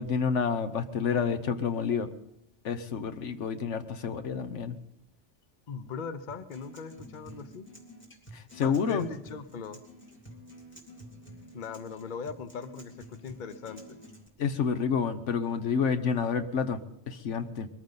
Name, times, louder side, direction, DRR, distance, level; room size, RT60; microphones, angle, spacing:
voice 1, 0.0-2.1 2.6-4.7 8.3-9.1 14.4-17.7, left 6 dB, 80° left, 10 dB, 1.2 m, -29 dB
voice 2, 5.7-7.7 8.6-9.8 11.5-13.8, left 5 dB, 45° left, 12 dB, 0.9 m, -39 dB
Acoustic guitar, 6.3-14.3, equal, 10° left, 2.4 m, -50 dB
22.0 x 14.5 x 4.0 m, 0.80 s
omnidirectional pair, 1.2 m